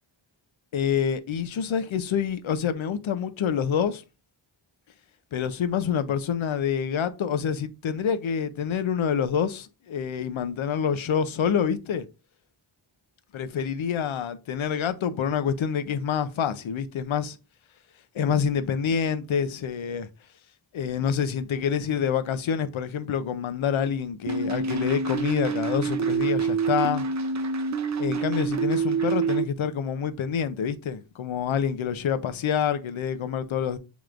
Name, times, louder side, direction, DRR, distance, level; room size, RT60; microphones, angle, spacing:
voice 1, 0.7-4.0 5.3-12.1 13.3-17.4 18.1-20.1 20.7-27.0 28.0-33.8, left 7 dB, 75° left, 0.6 m, -27 dB
sound 1, 24.3-29.4, right 5 dB, 40° right, 0.4 m, -26 dB
6.8 x 3.1 x 2.4 m
wide cardioid pair, 140°, 49 cm